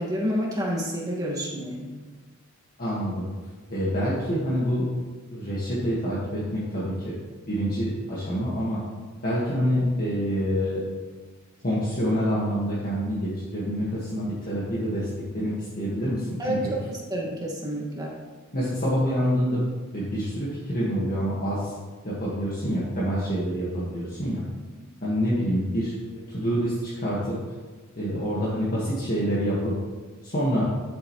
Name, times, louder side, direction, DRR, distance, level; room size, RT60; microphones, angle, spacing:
voice 1, 0.0-1.9 16.4-16.6 17.1-18.2, equal, 20° right, -3 dB, 1.9 m, -29 dB
voice 2, 2.8-3.3 3.7-4.9 5.3-7.1 7.5-8.8 9.2-10.8 11.6-15.1 15.3-16.7 18.5-21.7 22.0-24.4 25.0-25.9 26.3-27.4 27.9-29.7 30.2-30.6, equal, 45° left, -8 dB, 1.8 m, -26 dB
10.5 x 8.7 x 3.2 m, 1.4 s
head